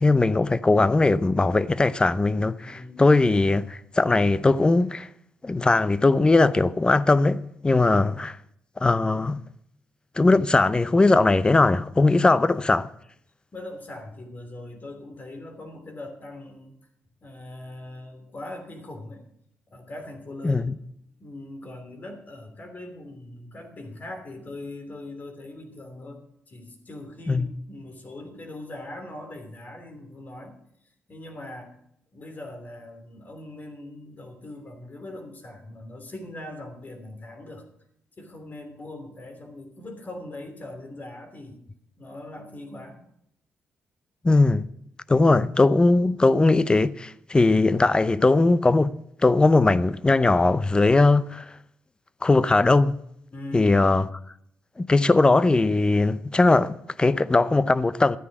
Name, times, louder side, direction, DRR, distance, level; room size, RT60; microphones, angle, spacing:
voice 1, 0.0-5.1 5.4-8.4 8.8-9.4 10.2-12.9 20.4-20.7 27.3-27.5 44.2-44.6 45.1-48.9 49.2-51.4 52.2-53.0 53.5-54.1 54.8-58.2, left 3 dB, 20° left, 0.6 m, -20 dB
voice 2, 2.6-3.0 7.7-8.1 12.2-12.4 13.5-16.7 17.2-19.2 19.7-20.7 21.2-26.2 26.5-30.5 31.1-31.7 32.1-37.6 38.2-41.6 42.0-43.0 53.3-53.8, left 1 dB, 40° left, 3.2 m, -41 dB
13.0 x 9.7 x 6.0 m
cardioid pair, 80°, 4 cm